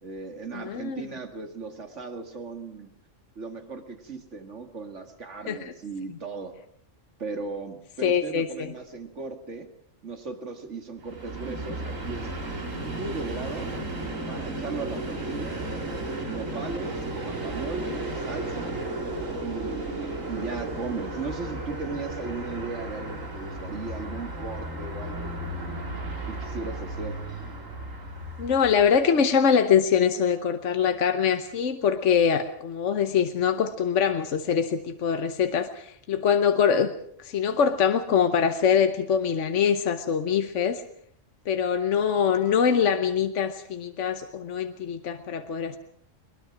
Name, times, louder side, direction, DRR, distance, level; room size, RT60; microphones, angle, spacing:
voice 1, 0.0-2.9 3.4-6.5 7.2-9.7 10.0-12.3 12.8-13.7 14.3-15.7 16.3-18.8 19.4-25.5 26.3-27.2, right 4 dB, 65° right, 6 dB, 2.4 m, -37 dB
voice 2, 0.5-1.0 5.5-5.7 8.0-8.7 28.4-36.9 37.2-40.8 41.5-45.8, left 7 dB, 70° left, 8 dB, 1.3 m, -23 dB
Train, 11.0-29.1, right 2 dB, 85° right, 3.4 m, -34 dB
22.0 x 21.0 x 6.0 m, 0.65 s
omnidirectional pair, 1.3 m